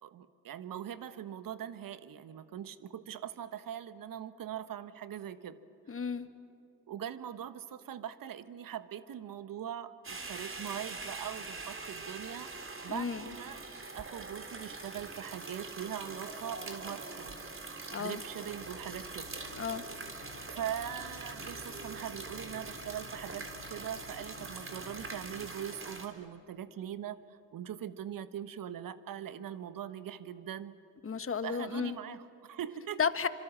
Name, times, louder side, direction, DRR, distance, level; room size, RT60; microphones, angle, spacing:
voice 1, 0.0-5.6 6.9-12.6 12.8-13.6 13.9-19.4 20.5-30.8 31.4-33.0, right 10 dB, 55° right, 13 dB, 1.3 m, -41 dB
voice 2, 5.9-6.3 12.9-13.2 17.9-18.2 19.5-19.8 31.0-32.0 33.0-33.3, left 6 dB, 35° left, 12 dB, 1.5 m, -33 dB
sound 1, 10.0-26.1, right 3 dB, 30° right, 3.8 m, -43 dB
sound 2, 18.4-25.5, left 7 dB, 70° left, 2.1 m, -53 dB
26.5 x 25.5 x 7.6 m, 2.8 s
hypercardioid pair, 50°, 39 cm